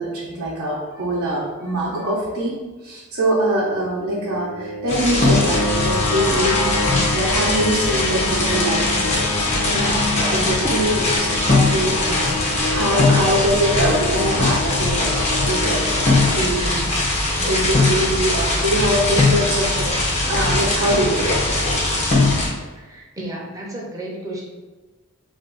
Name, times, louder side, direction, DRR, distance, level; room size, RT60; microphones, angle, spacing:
voice 1, 0.0-16.0 16.3-17.0 17.3-21.3, right 1 dB, 75° right, -6 dB, 0.6 m, -23 dB
sound 1, 4.0-17.1, left 3 dB, 85° left, 0.3 m, -27 dB
sound 2, 4.9-22.5, left 2 dB, 30° left, 0.6 m, -20 dB
voice 2, 22.7-24.4, right 1 dB, 15° right, -3 dB, 0.5 m, -33 dB
2.4 x 2.3 x 3.7 m, 1.2 s
head